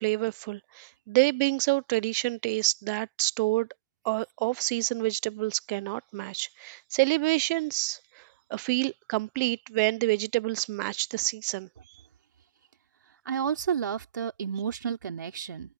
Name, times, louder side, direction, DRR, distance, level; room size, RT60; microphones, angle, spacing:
voice 1, 0.0-3.7 4.0-11.7, right 23 dB, 65° right, 0.9 m, -28 dB
voice 2, 13.3-15.7, right 7 dB, 85° right, 3.4 m, -31 dB
hypercardioid pair, 75°, 10 cm